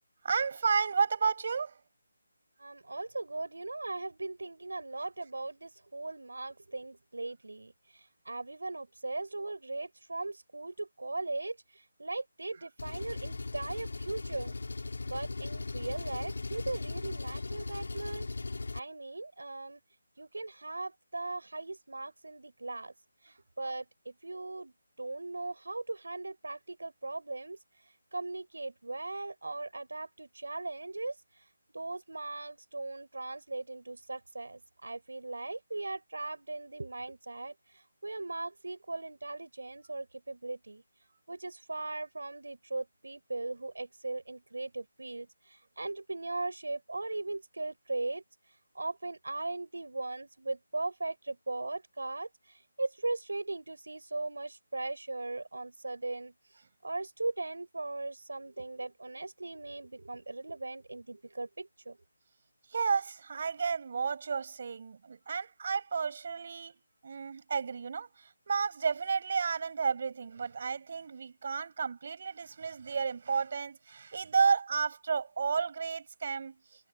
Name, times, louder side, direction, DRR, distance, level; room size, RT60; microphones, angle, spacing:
voice 1, 0.2-1.7 62.7-76.5, right 5 dB, 45° right, 7.9 m, -32 dB
voice 2, 2.6-14.6 15.1-18.3 18.7-19.8 20.2-22.9 23.2-24.7 25.0-27.6 28.1-31.1 31.7-37.5 38.0-40.8 41.3-48.2 48.7-56.3 56.8-62.0, right 2 dB, 85° right, 4.8 m, -38 dB
Engine, 12.8-18.8, left 3 dB, 75° left, 3.5 m, -38 dB
figure-of-eight pair, 160°, 0 cm